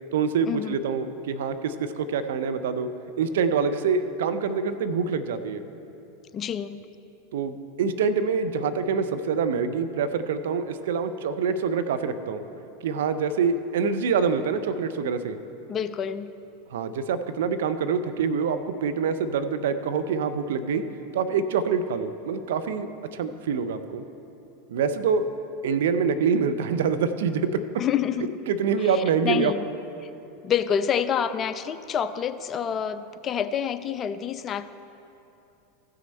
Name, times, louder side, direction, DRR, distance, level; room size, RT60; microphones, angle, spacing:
voice 1, 0.1-2.9 3.2-5.6 7.3-12.4 12.8-15.4 16.7-20.8 21.1-24.0 24.7-25.3 25.6-27.6 28.5-29.5, right 6 dB, 70° right, 10 dB, 0.5 m, -25 dB
voice 2, 6.3-6.8 15.7-16.3 27.8-28.3 28.8-29.7 30.0-30.1 30.4-34.7, left 8 dB, 35° left, 12 dB, 0.4 m, -27 dB
15.0 x 6.4 x 4.3 m, 2.8 s
hypercardioid pair, 90°, 0 cm